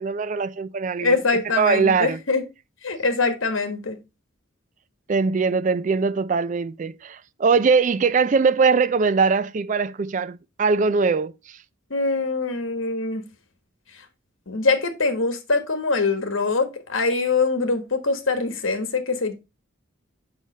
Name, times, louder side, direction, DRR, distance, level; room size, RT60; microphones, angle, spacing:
voice 1, 0.0-2.2 5.1-11.6, right 5 dB, 35° right, 0.3 m, -21 dB
voice 2, 1.0-2.4 2.8-4.0 11.9-13.2 14.5-19.3, left 3 dB, 70° left, 1.4 m, -23 dB
6.4 x 5.8 x 3.9 m
head